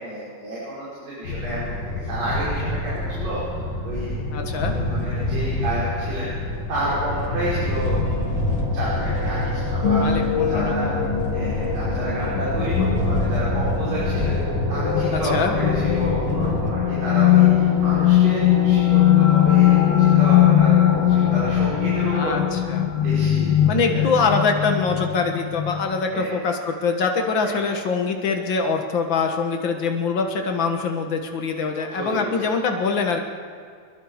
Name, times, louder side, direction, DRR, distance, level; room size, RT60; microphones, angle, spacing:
voice 1, 0.0-3.4 3.8-4.1 4.7-6.3 6.7-8.3 8.7-10.2 10.5-10.9 11.3-14.3 14.7-22.4 23.0-23.6 23.9-24.0 26.1-26.3 27.4-27.6 31.9-32.5, right 1 dB, 65° right, -10 dB, 7.7 m, -30 dB
sound 1, 1.2-16.7, left 2 dB, 35° left, 2.8 m, -27 dB
voice 2, 4.3-4.8 10.0-11.0 15.1-15.6 22.1-22.9 23.6-33.2, left 4 dB, 60° left, 4 dB, 1.2 m, -24 dB
sound 2, 7.2-23.1, right 1 dB, 25° right, 3.2 m, -34 dB
sound 3, 9.8-26.0, left 11 dB, 85° left, 3.5 m, -20 dB
26.0 x 22.0 x 5.0 m, 2.1 s
omnidirectional pair, 4.2 m